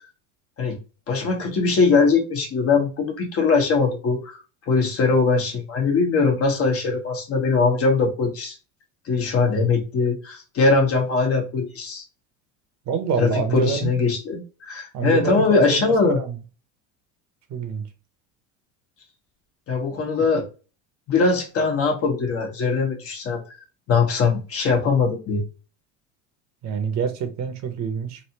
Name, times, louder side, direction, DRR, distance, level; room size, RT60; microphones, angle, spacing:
voice 1, 1.1-4.4 4.6-8.6 9.0-12.0 13.2-16.2 19.7-20.5 21.1-23.4 23.9-25.4, left 4 dB, 40° left, 1.2 m, -21 dB
voice 2, 12.9-13.9 14.9-16.4 17.5-17.8 20.2-20.3 26.6-28.2, right 6 dB, 50° right, 0.9 m, -26 dB
3.2 x 2.7 x 2.8 m
supercardioid pair, 120°, 35 cm